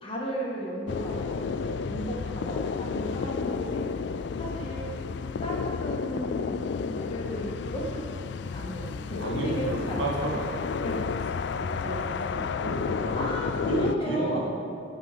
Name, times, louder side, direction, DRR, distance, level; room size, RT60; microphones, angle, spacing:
voice 1, 0.0-3.9 4.4-4.9 5.4-8.0 8.5-10.0 10.8-11.0 12.7-13.5 13.8-14.5, equal, 30° left, -3 dB, 2.0 m, -35 dB
sound 1, 0.9-14.0, left 5 dB, 65° left, 0.4 m, -31 dB
voice 2, 3.1-3.4 9.2-10.5 11.6-13.2 13.6-14.4, right 1 dB, 80° right, -2 dB, 2.2 m, -32 dB
16.5 x 5.8 x 5.2 m, 2.4 s
head